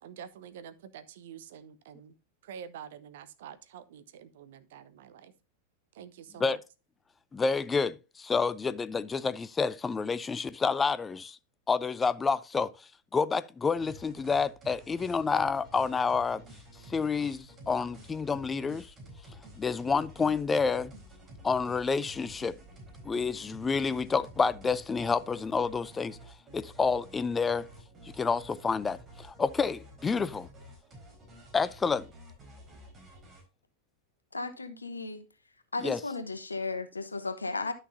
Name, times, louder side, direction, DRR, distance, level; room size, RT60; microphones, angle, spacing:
voice 1, 0.0-2.1 2.4-5.3 5.9-6.6, right 8 dB, 55° right, 0.8 m, -47 dB
voice 2, 7.3-11.4 11.7-12.7 13.1-16.4 16.9-18.9 19.6-20.9 21.4-22.6 23.0-26.2 26.5-27.7 28.0-30.5 31.5-32.1 35.8-36.0, left 5 dB, 15° left, 0.5 m, -29 dB
sound 1, 13.7-33.4, equal, 25° right, 4.1 m, -51 dB
voice 3, 34.3-35.2 35.7-37.7, left 3 dB, 80° left, 1.1 m, -35 dB
11.0 x 6.6 x 2.6 m
figure-of-eight pair, 90°, 0 cm